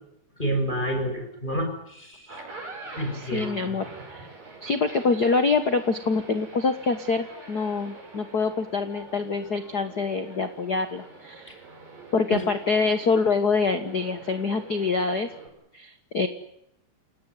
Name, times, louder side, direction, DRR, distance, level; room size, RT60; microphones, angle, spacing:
voice 1, 0.4-2.4 3.0-3.8 12.3-12.4, right 1 dB, 15° left, 5 dB, 5.9 m, -29 dB
sound 1, 2.1-15.5, right 3 dB, 90° right, 9.1 m, -45 dB
voice 2, 3.1-4.3 4.6-11.5 12.1-15.3 15.7-16.3, left 4 dB, 50° left, 9 dB, 1.2 m, -25 dB
28.5 x 18.5 x 9.6 m, 0.80 s
omnidirectional pair, 3.8 m